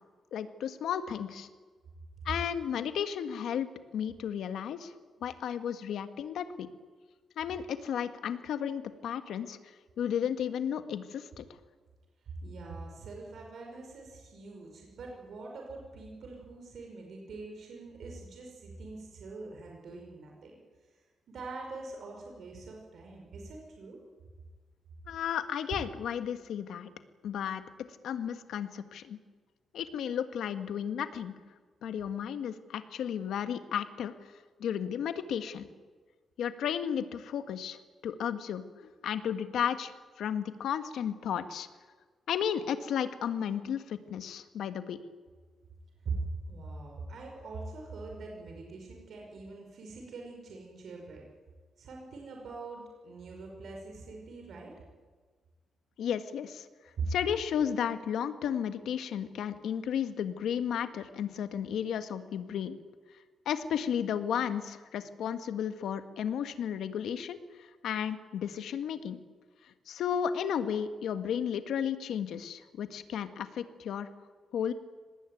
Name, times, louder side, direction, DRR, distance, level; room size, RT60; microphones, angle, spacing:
voice 1, 0.3-1.5 2.2-4.9 5.2-6.7 7.4-11.5 25.1-26.9 27.2-27.6 28.0-29.2 29.7-31.3 31.8-34.3 34.6-35.7 36.4-37.8 38.0-41.7 42.3-45.0 56.0-56.7 57.1-62.8 63.4-69.2 69.6-74.1 74.5-74.7, left 8 dB, 75° left, 9 dB, 1.6 m, -33 dB
voice 2, 12.4-20.6 21.3-24.0 46.0-51.3 51.8-54.7 57.0-57.1, right 3 dB, 60° right, 0 dB, 5.4 m, -43 dB
24.5 x 19.5 x 9.3 m, 1.5 s
cardioid pair, 135°, 0 cm